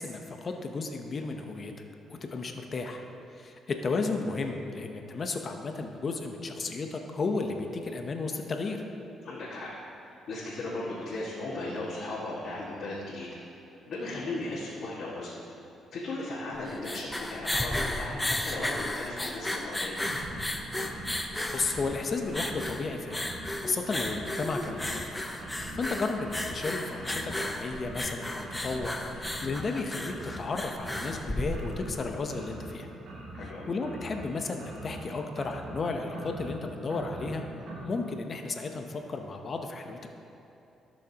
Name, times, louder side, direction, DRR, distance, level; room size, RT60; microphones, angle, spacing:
voice 1, 0.0-1.7 2.1-3.0 3.3-8.8 21.5-23.2 23.6-25.0 25.7-32.9 33.4-37.4 37.8-40.1, left 3 dB, 40° left, 4 dB, 0.8 m, -33 dB
voice 2, 9.2-9.7 10.0-13.4 13.9-15.4 15.9-20.0 33.3-33.7, left 2 dB, 65° left, -8 dB, 1.7 m, -36 dB
sound 1, 16.6-32.0, left 1 dB, 10° left, 0.7 m, -34 dB
sound 2, 20.0-37.9, right 1 dB, 65° right, 1.4 m, -44 dB
15.5 x 6.4 x 2.9 m, 2.8 s
cardioid pair, 90°, 0 cm